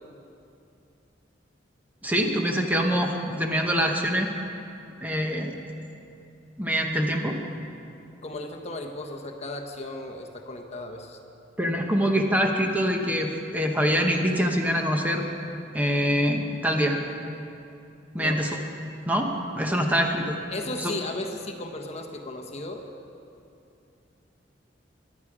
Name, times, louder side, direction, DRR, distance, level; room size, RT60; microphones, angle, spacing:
voice 1, 2.0-4.3 5.0-5.5 6.6-7.4 11.6-15.2 15.7-17.0 18.1-18.6 19.0-20.4 20.8-20.9, equal, 10° right, 2 dB, 1.0 m, -24 dB
voice 2, 8.2-11.2 18.2-18.4 20.5-22.8, left 2 dB, 35° left, 4 dB, 1.1 m, -35 dB
23.5 x 10.0 x 4.9 m, 2.7 s
head